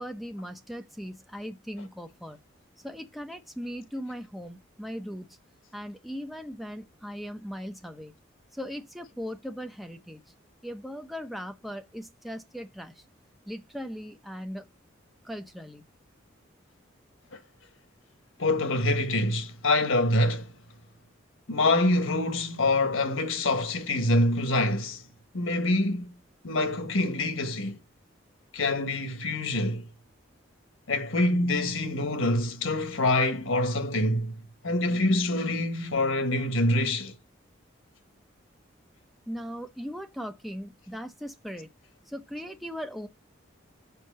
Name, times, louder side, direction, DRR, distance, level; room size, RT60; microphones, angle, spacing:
voice 1, 0.0-2.4 2.8-5.3 5.7-8.1 8.5-10.2 10.6-13.0 13.5-14.7 15.2-15.9 39.3-41.7 42.1-43.1, equal, ahead, 0.8 m, -38 dB
voice 2, 18.4-20.5 21.5-25.0 25.3-26.1 26.4-27.8 28.5-29.9 30.9-37.2, left 2 dB, 80° left, 1.4 m, -26 dB
6.0 x 4.6 x 6.2 m
head